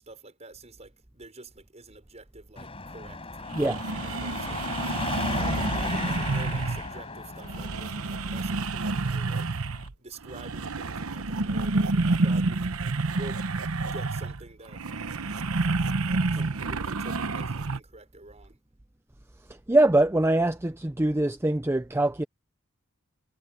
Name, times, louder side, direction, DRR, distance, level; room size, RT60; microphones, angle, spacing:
voice 1, 0.0-3.2 4.0-4.6 5.4-9.5 10.0-13.5 13.8-14.8 16.3-18.6, right 2 dB, 30° right, 5.9 m, -47 dB
Car passing by / Traffic noise roadway noise / Engine, 2.6-9.9, left 3 dB, 25° left, 4.8 m, -35 dB
sound 1, 3.1-3.2 3.5-6.9 7.4-9.9 10.2-17.8, right 3 dB, 85° right, 1.0 m, -29 dB
voice 2, 3.5-3.8 19.7-22.2, right 1 dB, 10° right, 0.6 m, -23 dB
sound 2, 4.5-9.6, left 2 dB, 90° left, 6.9 m, -53 dB
head